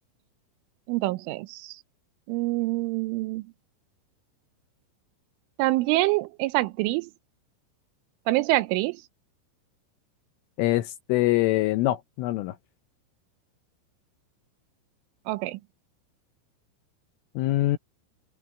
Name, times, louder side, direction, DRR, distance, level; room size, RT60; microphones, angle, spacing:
voice 1, 0.9-1.8 2.3-3.4 5.6-7.1 8.3-9.0 15.3-15.6, right 19 dB, 80° right, 3.0 m, -26 dB
voice 2, 10.6-12.6 17.4-17.8, left 17 dB, 80° left, 3.3 m, -24 dB
omnidirectional pair, 6.0 m